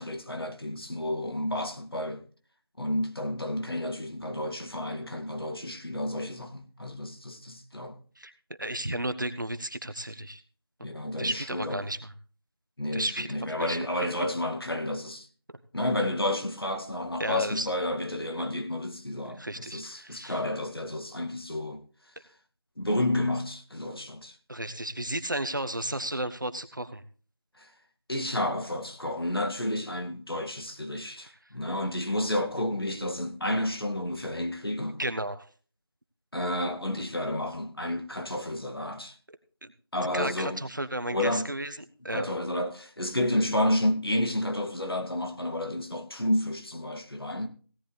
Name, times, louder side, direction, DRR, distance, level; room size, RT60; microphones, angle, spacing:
voice 1, 0.0-2.2 2.8-8.0 10.8-11.8 12.8-15.3 15.7-21.8 22.8-24.4 27.6-27.7 28.1-35.0 36.3-39.2 39.9-40.6 41.1-41.5 42.1-47.5, left 1 dB, 70° left, 2.2 m, -31 dB
voice 2, 8.6-10.4 11.2-12.1 12.9-13.3 13.6-13.8 17.2-17.7 19.4-20.4 24.5-27.0 35.0-35.4 39.6-39.7 40.1-41.7 42.0-42.3, right 1 dB, 50° right, 1.2 m, -33 dB
17.0 x 10.5 x 3.3 m
figure-of-eight pair, 180°, 13 cm